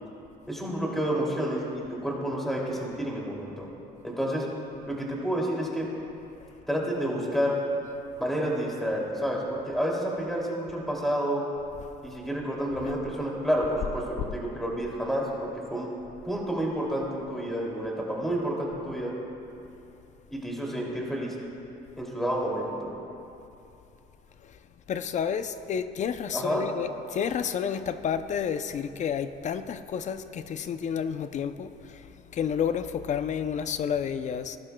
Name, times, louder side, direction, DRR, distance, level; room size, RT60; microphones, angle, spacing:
voice 1, 0.5-3.7 4.0-4.5 4.9-5.9 6.7-7.6 8.2-11.4 12.0-15.9 16.2-19.1 20.3-21.3 21.9-22.9 26.3-26.7, equal, ahead, 2.7 m, -29 dB
voice 2, 24.9-34.6, left 7 dB, 45° left, 0.6 m, -30 dB
20.0 x 12.0 x 2.3 m
cardioid pair, 110°, 17 cm